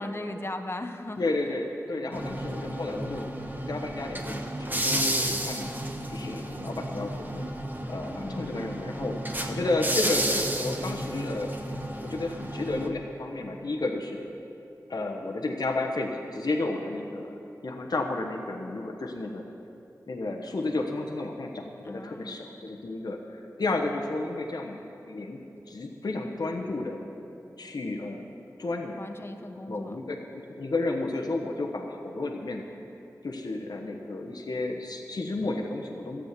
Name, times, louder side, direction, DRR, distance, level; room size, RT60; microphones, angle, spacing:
voice 1, 0.0-1.5 2.0-2.3 8.1-8.6 21.8-22.4 29.0-30.0, left 1 dB, 35° left, 6 dB, 1.0 m, -38 dB
voice 2, 1.2-3.3 3.7-5.7 6.1-7.5 7.9-9.2 9.5-11.6 12.0-14.2 14.9-17.3 17.6-19.4 20.1-25.4 25.7-27.0 27.6-28.3 28.6-29.0 29.7-32.6 33.2-36.2, left 2 dB, 70° left, 1 dB, 1.1 m, -32 dB
sound 1, 2.1-12.9, right 1 dB, 25° right, 1.4 m, -32 dB
13.5 x 7.7 x 8.3 m, 2.8 s
cardioid pair, 40°, 7 cm